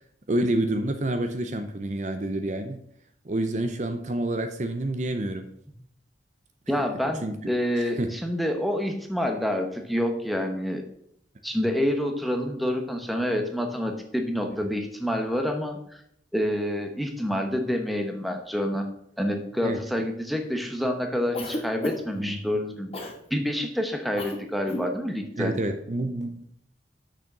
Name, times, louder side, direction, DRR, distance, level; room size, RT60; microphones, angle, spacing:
voice 1, 0.3-2.8 3.2-5.5 7.2-8.1 14.6-14.7 19.6-20.1 22.2-22.4 25.4-26.4, right 1 dB, 40° right, 7 dB, 0.6 m, -28 dB
voice 2, 6.7-10.8 11.4-16.0 16.3-18.9 19.2-25.5, equal, ahead, 4 dB, 0.9 m, -28 dB
Cough, 21.3-22.2 22.9-23.2 24.2-24.4 24.6-24.9, left 1 dB, 30° left, 1.3 m, -32 dB
6.4 x 6.4 x 6.0 m, 0.71 s
head